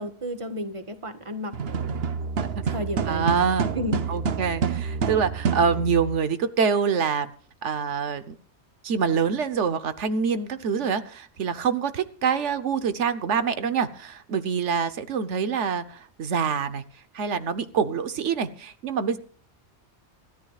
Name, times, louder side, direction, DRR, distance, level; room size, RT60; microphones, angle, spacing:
voice 1, 0.0-1.5 2.6-3.3 3.7-4.1, equal, 25° right, 6 dB, 1.5 m, -32 dB
sound 1, 1.5-6.2, right 6 dB, 60° right, 1.1 m, -28 dB
voice 2, 3.1-3.7 4.1-7.3 7.6-8.4 8.8-16.8 17.1-19.2, right 6 dB, 90° right, 10 dB, 1.3 m, -25 dB
26.0 x 13.5 x 2.4 m, 0.43 s
omnidirectional pair, 1.2 m